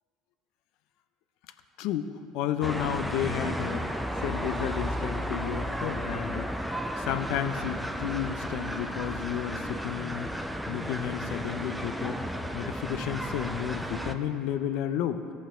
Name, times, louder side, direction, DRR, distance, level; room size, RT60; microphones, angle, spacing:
voice 1, 1.8-3.8 4.2-6.5 7.0-10.3 10.7-12.2 12.5-15.2, left 10 dB, 70° left, 10 dB, 0.5 m, -32 dB
sound 1, 2.6-14.1, equal, ahead, 0.5 m, -33 dB
14.0 x 5.4 x 3.7 m, 2.6 s
hypercardioid pair, 70°, 0 cm